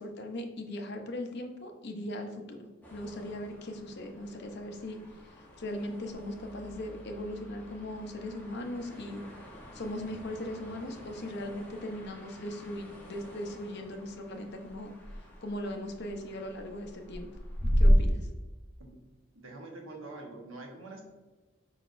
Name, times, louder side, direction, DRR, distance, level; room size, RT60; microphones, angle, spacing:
voice 1, 0.0-5.0 5.6-9.3 9.7-14.9 15.4-17.3 17.8-18.2, left 1 dB, 55° left, 4 dB, 0.6 m, -39 dB
sound 1, 2.8-17.9, equal, 10° left, 0.8 m, -36 dB
voice 2, 19.3-21.0, right 2 dB, 80° right, 1 dB, 1.0 m, -45 dB
5.2 x 4.0 x 2.5 m, 1.2 s
head